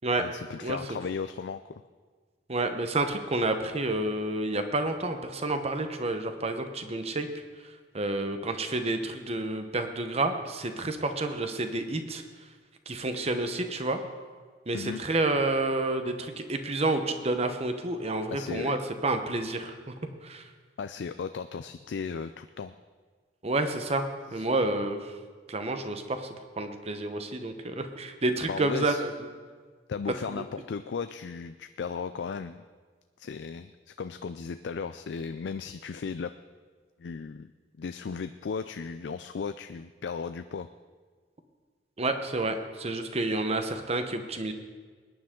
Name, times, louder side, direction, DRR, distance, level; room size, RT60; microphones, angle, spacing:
voice 1, 0.2-1.7 14.7-15.0 18.3-18.7 20.8-22.7 24.4-24.5 28.5-29.0 29.9-32.6 33.2-36.3 37.0-37.5 37.8-40.7, left 5 dB, 70° left, 10 dB, 0.4 m, -36 dB
voice 2, 2.5-7.3 7.9-12.2 12.9-14.0 14.7-19.9 20.2-20.4 23.4-25.1 25.5-29.1 30.3-30.4 42.0-44.5, right 2 dB, 35° right, 7 dB, 1.0 m, -29 dB
20.5 x 10.0 x 3.8 m, 1.5 s
head